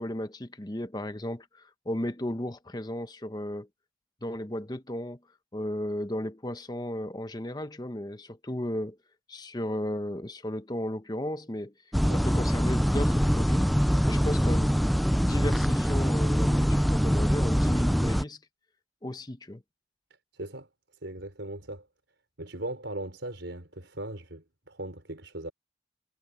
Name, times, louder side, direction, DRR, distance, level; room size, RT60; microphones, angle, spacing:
voice 1, 0.0-3.7 4.2-5.2 5.5-9.0 9.3-11.7 12.2-13.8 14.0-14.8 15.2-18.4 19.0-19.6, left 1 dB, 20° left, 0.9 m, -34 dB
sound 1, 11.9-18.2, equal, ahead, 0.3 m, -24 dB
voice 2, 20.3-20.7 21.0-21.9 22.4-25.5, right 1 dB, 85° right, 4.8 m, -38 dB
head